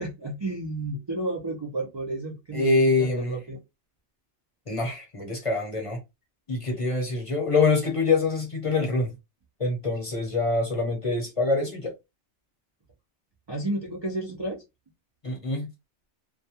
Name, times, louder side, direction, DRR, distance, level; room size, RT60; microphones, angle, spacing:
voice 1, 0.0-3.6 13.5-14.6, right 1 dB, 45° right, 0.3 m, -32 dB
voice 2, 2.5-3.4 4.7-6.0 6.5-9.1 9.6-11.9 15.2-15.7, left 3 dB, 30° left, 0.8 m, -25 dB
2.3 x 2.2 x 2.8 m
omnidirectional pair, 1.2 m